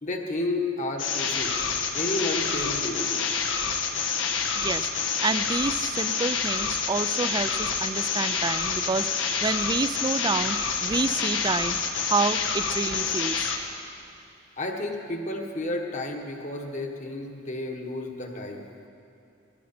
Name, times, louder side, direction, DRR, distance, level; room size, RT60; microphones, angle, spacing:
voice 1, 0.0-1.5 1.9-3.3 14.6-18.6, left 2 dB, 40° left, 2 dB, 1.3 m, -31 dB
sound 1, 1.0-13.6, left 5 dB, 90° left, 1.3 m, -27 dB
voice 2, 4.6-4.9 5.2-11.8 12.0-13.5, right 3 dB, 20° right, 13 dB, 0.3 m, -28 dB
18.5 x 13.5 x 4.3 m, 2.8 s
head